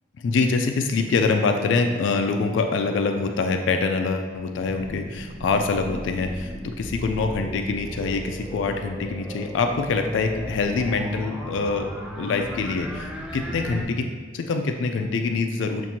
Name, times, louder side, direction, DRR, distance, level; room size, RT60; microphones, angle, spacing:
voice 1, 0.2-11.9 12.2-14.0 14.3-15.9, left 4 dB, 85° left, 5 dB, 0.3 m, -25 dB
sound 1, 4.6-13.8, equal, 5° right, 0.4 m, -36 dB
7.1 x 2.5 x 2.8 m, 1.5 s
head